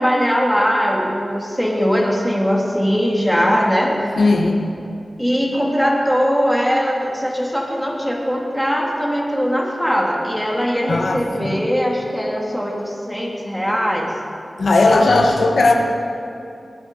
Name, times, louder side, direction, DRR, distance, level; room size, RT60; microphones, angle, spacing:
voice 1, 0.0-3.9 5.2-14.1, equal, ahead, -2 dB, 2.2 m, -20 dB
voice 2, 4.2-4.7 10.9-11.6 14.6-15.7, left 2 dB, 80° left, 2 dB, 1.1 m, -16 dB
18.5 x 10.0 x 3.8 m, 2.6 s
wide cardioid pair, 70°, 0 cm